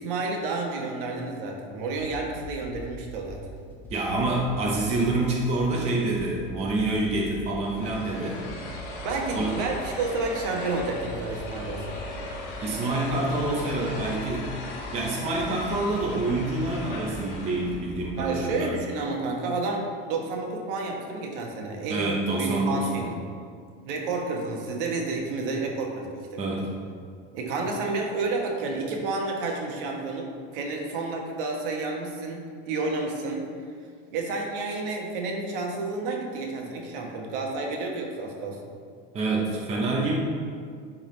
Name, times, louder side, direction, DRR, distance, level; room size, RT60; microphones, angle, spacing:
voice 1, 0.0-3.4 9.0-12.0 18.2-23.1 23.8-26.7 27.3-30.3 30.5-33.5 34.1-38.6, right 3 dB, 65° right, 1 dB, 1.2 m, -30 dB
sound 1, 1.9-18.1, right 1 dB, 5° left, 1.4 m, -42 dB
voice 2, 3.9-8.4 9.3-9.5 12.6-14.5 14.9-18.7 21.9-23.1 26.4-26.7 39.1-40.2, right 2 dB, 20° right, -3 dB, 0.8 m, -27 dB
sound 2, 7.6-17.9, left 2 dB, 65° left, 1.7 m, -39 dB
10.5 x 3.8 x 3.2 m, 2.1 s
supercardioid pair, 165°, 29 cm